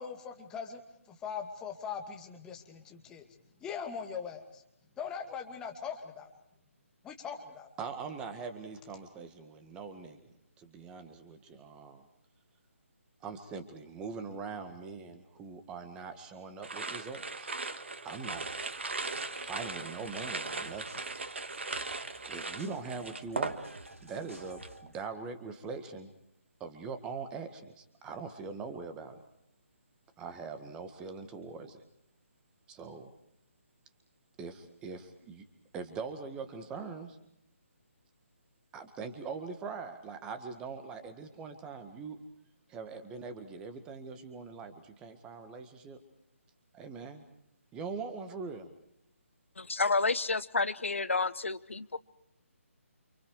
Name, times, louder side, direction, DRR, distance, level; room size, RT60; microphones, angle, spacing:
voice 1, 0.0-3.3 3.6-4.6 5.0-6.3 7.0-7.7, left 6 dB, 10° left, 2 dB, 2.3 m, -41 dB
voice 2, 7.8-10.2 10.6-12.0 13.2-17.5 18.1-18.5 19.4-20.8 22.3-23.6 24.0-26.1 26.6-29.2 30.2-31.8 32.7-33.1 34.4-35.4 35.7-37.2 38.7-42.2 42.7-46.0 46.7-47.2 47.7-48.7, right 5 dB, 10° right, 9 dB, 1.7 m, -42 dB
sound 1, 16.6-24.0 24.3-24.8, right 3 dB, 55° right, 1.7 m, -38 dB
sound 2, 18.3-25.1, right 1 dB, 70° right, 2.6 m, -54 dB
voice 3, 49.6-52.0, left 3 dB, 60° left, 16 dB, 1.0 m, -30 dB
29.5 x 28.5 x 4.8 m, 0.80 s
figure-of-eight pair, 145°, 7 cm